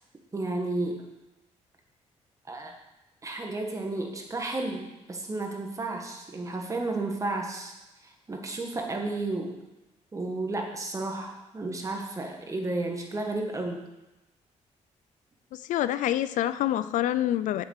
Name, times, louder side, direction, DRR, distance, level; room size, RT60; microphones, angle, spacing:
voice 1, 0.3-1.0 2.5-2.7 3.2-7.7 8.0-9.6 10.1-13.8, right 2 dB, 25° right, 2 dB, 1.8 m, -32 dB
voice 2, 15.5-17.6, left 12 dB, 90° left, 14 dB, 0.4 m, -27 dB
7.8 x 6.6 x 6.7 m, 1.0 s
cardioid pair, 105°, 13 cm